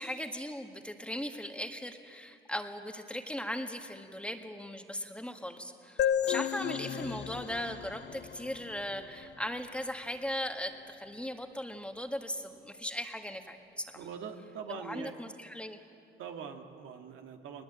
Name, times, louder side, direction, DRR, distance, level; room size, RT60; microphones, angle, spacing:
voice 1, 0.0-13.9 14.7-15.8, equal, 5° left, 5 dB, 1.8 m, -38 dB
sound 1, 6.0-9.5, left 10 dB, 60° left, 0.7 m, -33 dB
voice 2, 14.0-15.1 16.2-17.6, right 7 dB, 80° right, 4 dB, 1.8 m, -42 dB
21.0 x 20.5 x 8.9 m, 2.5 s
cardioid pair, 90°, 20 cm